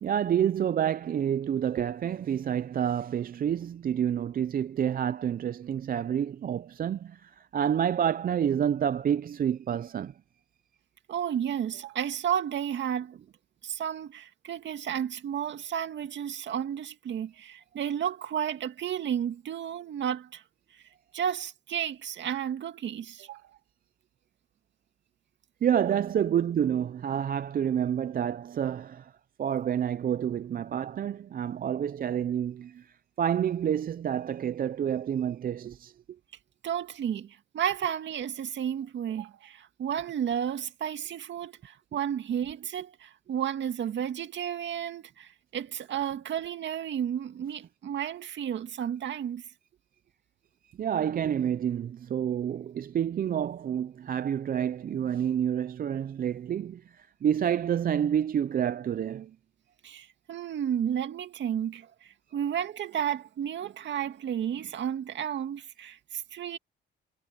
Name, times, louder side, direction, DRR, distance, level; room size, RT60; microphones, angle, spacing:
voice 1, 0.0-10.1 25.6-29.1 29.4-35.9 50.8-59.3, right 9 dB, 45° right, 0.6 m, -28 dB
voice 2, 11.1-13.2 13.6-20.4 20.7-20.8 21.1-23.5 36.6-49.4 59.8-66.6, right 9 dB, 65° right, 2.1 m, -32 dB
cardioid pair, 90°, 20 cm